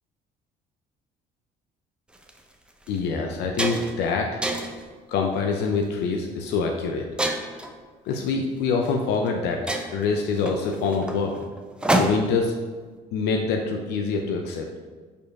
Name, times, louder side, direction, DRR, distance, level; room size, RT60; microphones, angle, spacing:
sound 1, 2.1-2.3 2.9-3.0 3.3-4.0 4.4-4.9 5.5-5.8 7.2-7.7 8.8-8.9 9.3-9.4 9.7-12.4, right 1 dB, 5° right, 0.6 m, -27 dB
voice 1, 2.9-4.4 5.1-7.1 8.1-9.6 9.9-11.4 11.9-12.5 13.1-14.7, left 4 dB, 80° left, 2 dB, 0.6 m, -25 dB
5.4 x 4.5 x 4.7 m, 1.4 s
cardioid pair, 110°, 17 cm